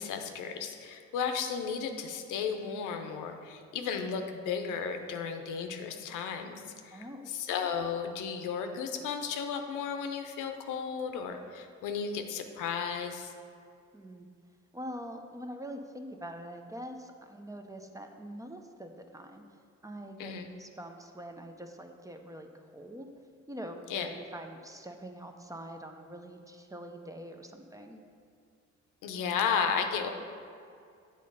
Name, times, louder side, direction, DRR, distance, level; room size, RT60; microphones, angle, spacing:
voice 1, 0.0-13.3 20.2-20.5 23.9-24.1 29.0-30.1, left 6 dB, 90° left, 6 dB, 0.7 m, -34 dB
voice 2, 6.9-7.3 13.9-14.3 14.7-19.4 19.8-23.1 23.5-28.0, equal, 10° right, 4 dB, 0.5 m, -44 dB
7.3 x 3.8 x 5.3 m, 2.3 s
cardioid pair, 90°, 30 cm